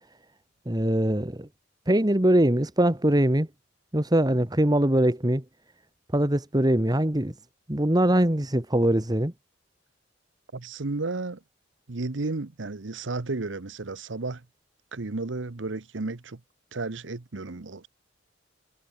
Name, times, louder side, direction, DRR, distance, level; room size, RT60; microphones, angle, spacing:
voice 1, 0.6-1.5 1.8-3.5 3.9-5.4 6.1-7.4 7.7-9.3, right 1 dB, 20° right, 1.6 m, -22 dB
voice 2, 10.5-11.4 11.9-14.4 14.9-16.4 16.7-17.9, right 3 dB, 70° right, 1.0 m, -33 dB
head